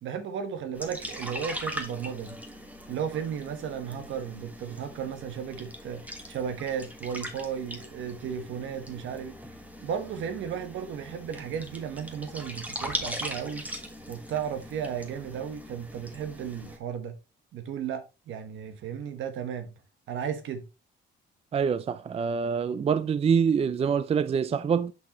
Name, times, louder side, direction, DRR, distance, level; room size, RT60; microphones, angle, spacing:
voice 1, 0.0-2.4 2.9-9.4 9.8-13.7 14.1-17.2 17.5-19.7 20.1-20.7, right 8 dB, 75° right, 1.1 m, -34 dB
sound 1, 0.7-16.8, equal, 5° right, 1.4 m, -40 dB
voice 2, 21.5-24.9, right 6 dB, 30° right, 0.4 m, -25 dB
6.2 x 6.0 x 2.9 m
cardioid pair, 90°, 20 cm